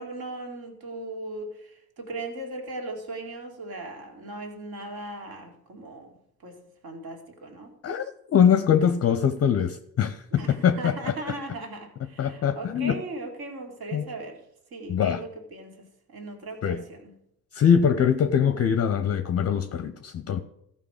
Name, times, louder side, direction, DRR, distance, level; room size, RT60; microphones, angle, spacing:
voice 1, 0.0-6.6 6.8-7.7 10.3-14.4 14.7-17.1, right 2 dB, 55° right, 2.4 m, -38 dB
voice 2, 8.3-10.9 12.2-13.0 13.9-14.0 14.9-15.2 16.6-16.8 17.5-20.4, left 8 dB, 35° left, 0.7 m, -22 dB
15.0 x 5.3 x 4.9 m
hypercardioid pair, 55°, 45 cm